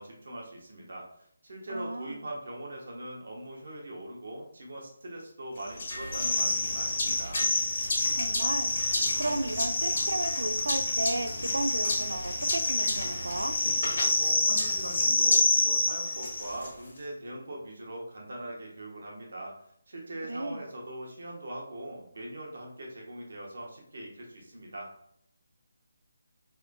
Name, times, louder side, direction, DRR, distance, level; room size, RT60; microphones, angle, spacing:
voice 1, 0.0-7.5 14.0-19.5 19.9-24.9, right 1 dB, 70° right, -2 dB, 1.1 m, -41 dB
voice 2, 1.7-2.2 8.1-8.7 9.2-13.5 20.3-20.6, right 2 dB, 90° right, 7 dB, 0.3 m, -33 dB
sound 1, 5.8-16.7, left 2 dB, 55° left, 1.2 m, -27 dB
3.5 x 2.5 x 2.2 m, 0.72 s
figure-of-eight pair, 160°, 0 cm